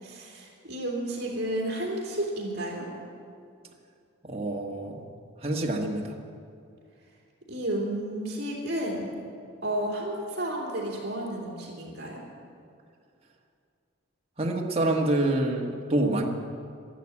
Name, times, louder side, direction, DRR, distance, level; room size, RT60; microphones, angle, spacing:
voice 1, 0.0-2.9 7.5-9.1 9.6-12.2, right 1 dB, 50° right, -2 dB, 3.0 m, -32 dB
voice 2, 4.2-5.1 5.4-6.1 14.4-16.3, right 1 dB, 30° right, 0 dB, 1.3 m, -27 dB
12.5 x 11.5 x 8.6 m, 2.4 s
head